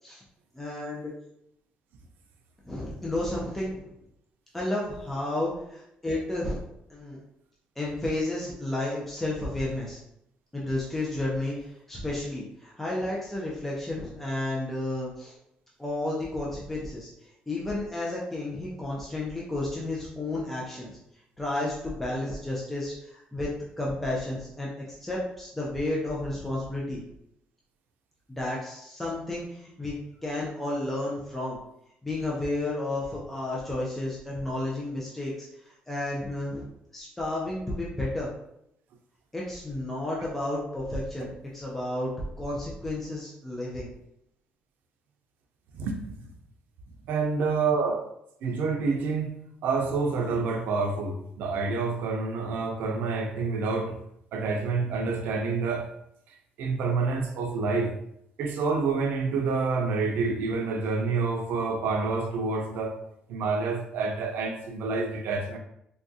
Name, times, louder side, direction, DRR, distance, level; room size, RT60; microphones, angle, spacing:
voice 1, 0.5-1.1 2.6-3.9 4.5-6.6 6.9-7.2 7.8-10.0 10.5-15.3 15.8-17.1 17.5-21.0 21.4-23.5 23.8-27.0 28.3-29.9 30.2-31.6 32.0-36.7 36.9-38.3 39.3-42.1 42.4-43.9, left 1 dB, 5° left, -5 dB, 0.5 m, -32 dB
voice 2, 45.7-46.3 47.1-48.1 48.4-54.0 54.3-55.9 56.6-57.9 58.4-63.0 63.3-65.6, right 4 dB, 85° right, 4 dB, 0.5 m, -28 dB
3.5 x 2.2 x 2.7 m, 0.77 s
cardioid pair, 175°, 3 cm